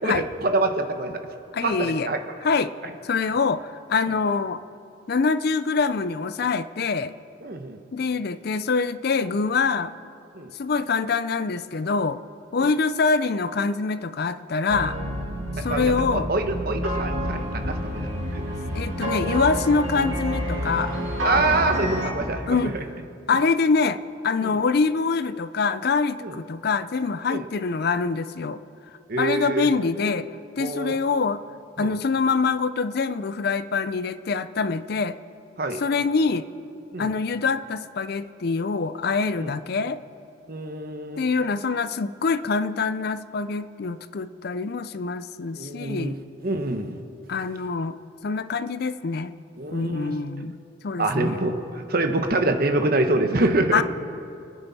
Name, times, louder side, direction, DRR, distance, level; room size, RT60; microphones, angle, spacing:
voice 1, 0.0-1.2 1.6-2.2 7.4-7.8 10.3-10.5 15.7-18.0 18.3-18.4 21.2-22.8 23.3-23.4 24.4-24.6 26.2-26.4 27.3-27.4 29.1-29.7 30.6-31.0 31.8-31.9 35.6-35.8 36.9-37.1 39.4-39.5 40.5-41.2 45.6-47.0 49.6-50.1 51.0-53.8, right 2 dB, 50° right, 6 dB, 1.1 m, -26 dB
voice 2, 1.5-2.1 2.4-2.7 3.0-4.6 5.1-7.1 7.9-9.9 10.5-12.2 12.5-15.0 15.6-16.3 18.7-20.9 22.5-22.7 23.3-24.0 24.2-28.6 29.2-30.3 30.6-31.4 31.8-35.2 35.8-36.4 37.0-40.0 41.2-46.2 47.3-48.0 48.2-49.3 49.7-50.6 50.8-51.4 53.7-53.8, left 4 dB, 50° left, 13 dB, 0.5 m, -25 dB
sound 1, 14.7-22.1, equal, 90° right, 2.8 m, -28 dB
29.0 x 9.9 x 4.2 m, 2.6 s
head